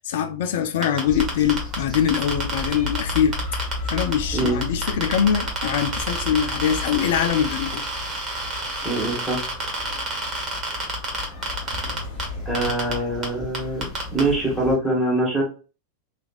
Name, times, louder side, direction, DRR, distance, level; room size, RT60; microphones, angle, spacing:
voice 1, 0.0-3.3 3.9-7.8 11.9-12.0, left 8 dB, 55° left, 0.4 m, -23 dB
sound 1, 0.8-4.1 4.4-12.2 12.5-12.9 13.2-13.3 13.5-14.2, right 3 dB, 25° right, 1.2 m, -29 dB
sound 2, 1.0-14.8, left 4 dB, 20° left, 1.2 m, -36 dB
sound 3, 2.3-10.1 11.7-12.7, left 3 dB, 65° right, 0.8 m, -35 dB
voice 2, 8.8-9.4 12.4-15.4, right 2 dB, ahead, 1.3 m, -24 dB
3.0 x 2.5 x 2.4 m
figure-of-eight pair, 90°, 0 cm